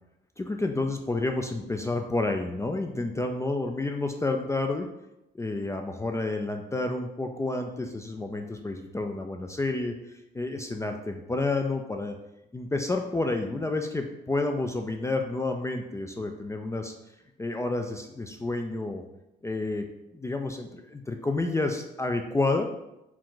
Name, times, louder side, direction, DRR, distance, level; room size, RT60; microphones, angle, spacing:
voice 1, 0.4-4.9 5.3-12.2 12.5-16.9 17.4-19.0 19.4-19.9 20.1-22.7, left 2 dB, 15° left, 4 dB, 0.4 m, -30 dB
4.8 x 2.4 x 3.8 m, 0.87 s
cardioid pair, 90°, 20 cm